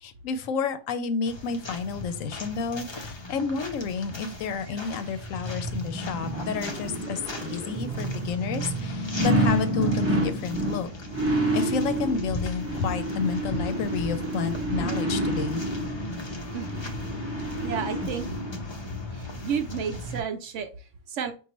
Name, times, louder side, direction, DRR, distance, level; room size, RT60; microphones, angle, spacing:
voice 1, 0.0-10.9 11.5-15.6, left 5 dB, 75° left, 10 dB, 0.9 m, -31 dB
sound 1, 1.3-20.2, left 2 dB, 40° left, 0.4 m, -38 dB
sound 2, 4.7-18.6 19.0-19.1, right 1 dB, 15° right, 0.5 m, -29 dB
voice 2, 16.5-16.9 17.6-18.3 19.1-21.3, right 7 dB, 70° right, 7 dB, 0.9 m, -32 dB
5.4 x 2.4 x 3.0 m, 0.35 s
omnidirectional pair, 1.4 m